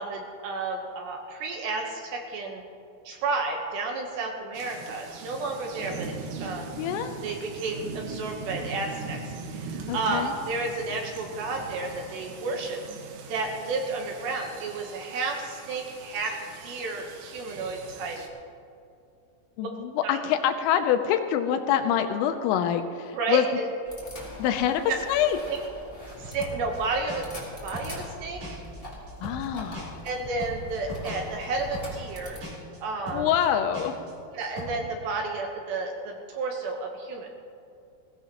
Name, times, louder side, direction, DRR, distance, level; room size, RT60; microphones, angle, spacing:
voice 1, 0.0-2.6 3.1-6.1 6.4-6.7 7.2-9.2 9.5-12.8 13.3-16.4 16.6-18.2 19.6-19.7 20.0-20.2 23.1-23.7 25.5-25.6 26.2-27.3 27.6-28.6 30.0-32.4 32.8-33.3 34.3-37.3, right 3 dB, 70° right, 1 dB, 2.8 m, -31 dB
sound 1, 4.5-18.3, right 4 dB, 90° right, 4.2 m, -40 dB
voice 2, 6.8-7.1 9.9-10.3 19.6-23.4 24.4-24.8 25.1-25.4 29.2-30.0 33.1-33.9, left 9 dB, 80° left, 7 dB, 3.2 m, -25 dB
sound 2, 23.8-32.4, left 1 dB, 10° left, 1.7 m, -43 dB
sound 3, 26.1-26.8 27.1-27.5 27.7-28.1 28.4-28.8 29.1-29.5 29.7-32.1 32.4-32.8 33.1-33.5 33.7-34.1 34.4-34.7, right 1 dB, 45° right, 5.2 m, -39 dB
20.5 x 16.5 x 3.0 m, 2.5 s
omnidirectional pair, 6.0 m